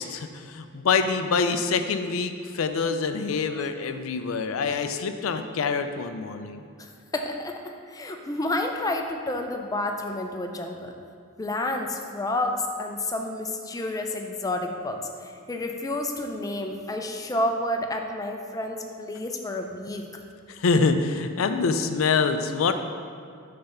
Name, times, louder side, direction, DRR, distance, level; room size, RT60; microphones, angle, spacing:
voice 1, 0.0-6.6 20.5-22.7, left 5 dB, 80° left, 8 dB, 0.4 m, -25 dB
voice 2, 6.8-10.9 11.4-20.1, left 1 dB, 15° left, 3 dB, 0.4 m, -30 dB
6.8 x 3.4 x 5.5 m, 2.3 s
head